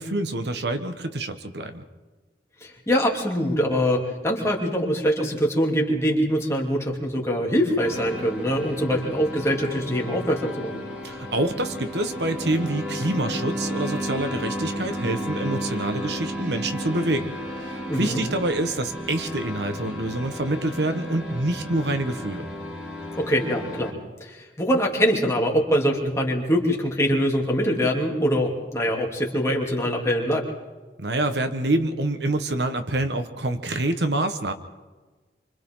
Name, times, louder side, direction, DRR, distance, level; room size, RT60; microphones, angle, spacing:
voice 1, 0.0-1.8 11.0-22.5 31.0-34.5, right 2 dB, 75° right, 7 dB, 1.4 m, -26 dB
voice 2, 2.6-10.8 17.9-18.2 23.2-23.9 24.2-30.5, equal, 15° left, -2 dB, 2.9 m, -23 dB
sound 1, 7.8-23.9, equal, 5° right, 3.2 m, -33 dB
28.0 x 25.0 x 3.9 m, 1.3 s
head